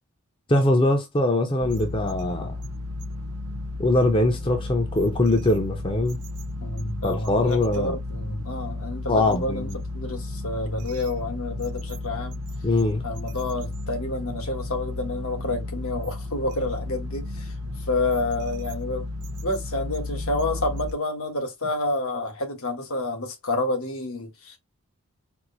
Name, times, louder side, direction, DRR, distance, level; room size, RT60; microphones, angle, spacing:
voice 1, 0.5-2.5 3.8-6.2 7.0-8.0 9.1-9.7 12.6-13.0, left 2 dB, 25° left, 0.6 m, -22 dB
sound 1, 1.6-20.9, left 2 dB, 75° right, 0.6 m, -33 dB
voice 2, 6.6-12.4 13.0-17.5 17.9-19.1 19.4-24.6, left 2 dB, 70° left, 1.3 m, -29 dB
4.5 x 2.1 x 4.0 m
head